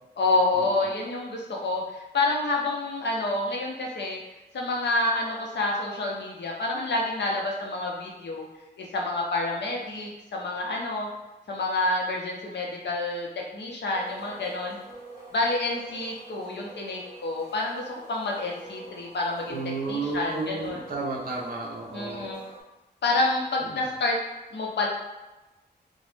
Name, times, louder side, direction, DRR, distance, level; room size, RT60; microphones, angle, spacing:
voice 1, 0.2-4.2 4.5-8.5 8.8-11.1 11.5-14.8 15.3-19.6 19.9-20.9 21.9-22.4 23.0-24.2 24.5-24.9, left 2 dB, 75° left, -1 dB, 0.6 m, -28 dB
sound 1, 13.9-22.6, right 2 dB, 25° right, 1.2 m, -47 dB
voice 2, 19.5-22.3, right 3 dB, 55° right, -1 dB, 0.6 m, -32 dB
3.0 x 2.1 x 3.2 m, 1.1 s
wide cardioid pair, 140°, 18 cm